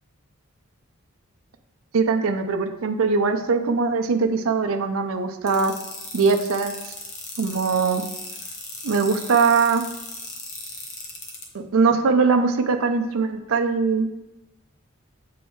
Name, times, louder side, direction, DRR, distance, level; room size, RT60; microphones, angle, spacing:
voice 1, 1.9-5.7 6.1-6.9 7.4-8.0 8.8-9.8 11.5-14.1, right 4 dB, 80° right, 6 dB, 0.5 m, -21 dB
sound 1, 5.5-11.4, left 3 dB, 35° left, 1.0 m, -36 dB
7.8 x 4.8 x 3.1 m, 0.95 s
head